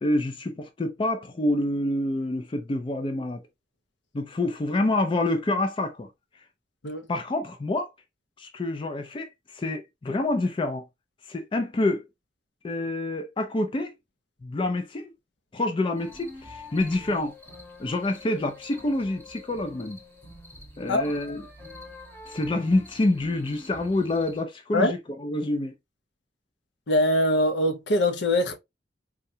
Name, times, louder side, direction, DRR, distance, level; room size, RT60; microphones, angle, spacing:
voice 1, 0.0-3.4 4.1-6.1 7.1-7.9 8.4-10.9 11.3-12.1 12.6-13.9 14.4-15.1 15.5-17.3 17.8-20.0 20.8-21.4 22.3-25.7, left 2 dB, 30° left, 0.4 m, -27 dB
sound 1, 15.9-24.4, left 2 dB, 15° left, 0.9 m, -46 dB
voice 2, 26.9-28.6, left 1 dB, 75° left, 0.6 m, -22 dB
3.6 x 2.2 x 2.7 m
head